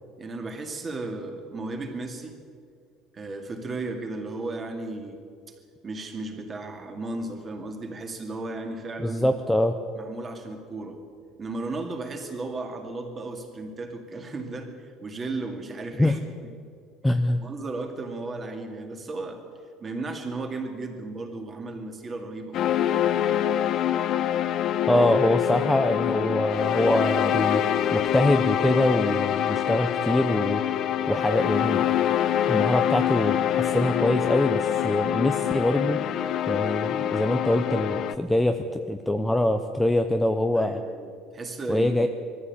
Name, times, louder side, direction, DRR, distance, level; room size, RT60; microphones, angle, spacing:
voice 1, 0.2-2.4 3.1-5.2 5.5-5.6 5.8-9.3 10.0-11.0 11.4-16.2 17.4-19.4 19.8-23.2 40.6-42.1, right 2 dB, 20° right, 4 dB, 2.2 m, -35 dB
voice 2, 9.0-9.8 16.0-16.1 17.0-17.4 24.8-27.6 27.9-30.6 31.1-31.9 32.5-36.0 36.5-40.8 41.7-42.1, left 1 dB, 5° left, 6 dB, 0.6 m, -24 dB
sound 1, 22.5-38.1, left 10 dB, 40° left, 0.8 m, -25 dB
21.5 x 14.0 x 8.6 m, 2.1 s
cardioid pair, 170°, 0 cm